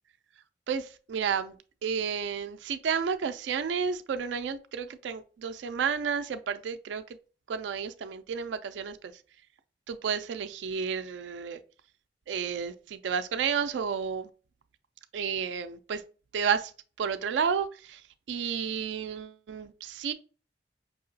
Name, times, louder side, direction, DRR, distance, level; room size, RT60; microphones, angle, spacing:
voice 1, 0.7-1.5 1.8-7.0 7.5-9.1 9.9-11.6 12.3-14.3 15.1-16.0 16.3-16.7 17.0-18.0 18.3-20.1, right 6 dB, 85° right, 0.4 m, -31 dB
5.4 x 2.8 x 2.6 m
head